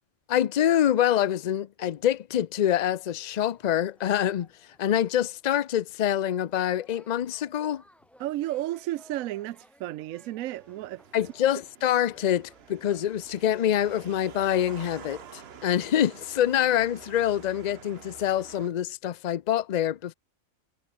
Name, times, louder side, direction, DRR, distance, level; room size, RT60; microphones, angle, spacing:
voice 1, 0.3-4.5 4.8-7.8 11.1-20.1, left 11 dB, 65° left, 0.4 m, -25 dB
sound 1, 3.2-15.9, equal, ahead, 5.0 m, -60 dB
voice 2, 8.2-11.0, right 15 dB, 80° right, 1.0 m, -33 dB
sound 2, 10.5-18.7, right 8 dB, 50° right, 1.0 m, -48 dB
omnidirectional pair, 1.4 m